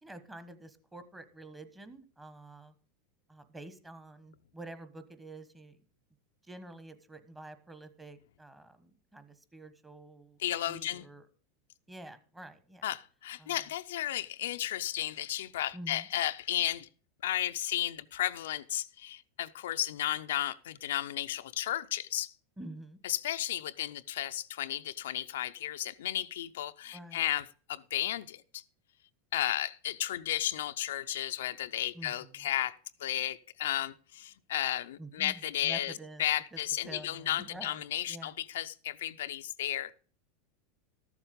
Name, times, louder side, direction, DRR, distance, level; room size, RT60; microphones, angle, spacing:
voice 1, 0.0-2.7 3.3-5.8 6.4-10.4 10.6-11.3 11.9-12.8 13.4-13.6 15.7-16.1 22.6-23.0 26.9-27.2 31.9-32.5 35.0-36.2 36.5-38.3, right 1 dB, 10° right, 1.2 m, -48 dB
voice 2, 10.4-11.1 12.8-16.9 17.2-22.3 23.0-28.6 29.3-35.9 36.2-39.9, left 12 dB, 85° left, 0.5 m, -34 dB
13.5 x 7.3 x 5.2 m
supercardioid pair, 130°, 0 cm